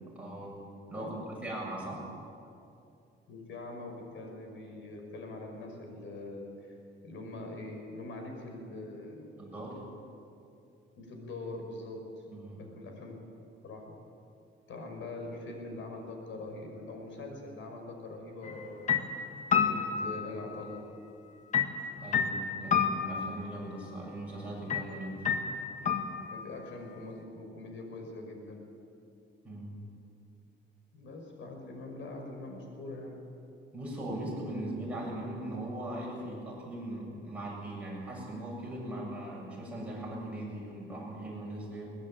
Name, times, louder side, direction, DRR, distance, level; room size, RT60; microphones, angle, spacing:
voice 1, 0.1-0.6 0.9-2.1 9.4-9.8 12.3-12.6 22.0-25.2 29.4-29.8 33.7-41.9, right 1 dB, 5° right, -5 dB, 7.6 m, -39 dB
voice 2, 3.3-6.8 7.0-9.3 11.0-12.1 12.6-13.2 13.6-14.0 14.7-19.0 19.5-20.8 26.3-28.7 30.9-33.2, left 2 dB, 75° left, 3 dB, 5.3 m, -43 dB
sound 1, 18.4-18.6 18.9-20.8 21.5-23.6 24.7-24.9 25.2-26.6, left 6 dB, 40° left, 1.5 m, -30 dB
22.0 x 20.0 x 9.0 m, 2.6 s
cardioid pair, 170°, 20 cm